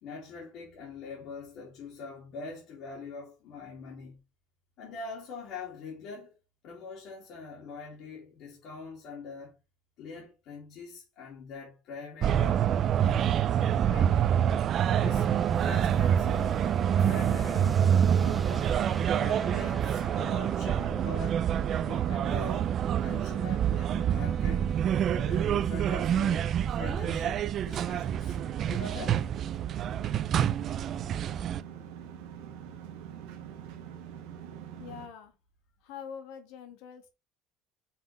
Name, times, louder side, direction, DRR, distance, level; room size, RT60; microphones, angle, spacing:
voice 1, 0.0-4.2 4.8-6.3 6.6-9.5 10.0-12.7 13.0-13.4 13.8-14.4 15.0-15.3 15.6-16.6 17.0-18.7 19.2-21.5 21.8-24.7 25.1-28.4 28.7-29.2, left 4 dB, 60° left, 2.4 m, -43 dB
sound 1, 12.2-31.6, right 9 dB, 45° right, 0.4 m, -27 dB
sound 2, 15.0-21.2, right 2 dB, 15° right, 0.8 m, -40 dB
sound 3, 27.9-35.1, right 9 dB, 90° right, 1.2 m, -44 dB
voice 2, 34.8-35.4 35.8-37.1, left 7 dB, 80° left, 1.7 m, -44 dB
5.7 x 3.7 x 4.5 m
cardioid pair, 130°, 0 cm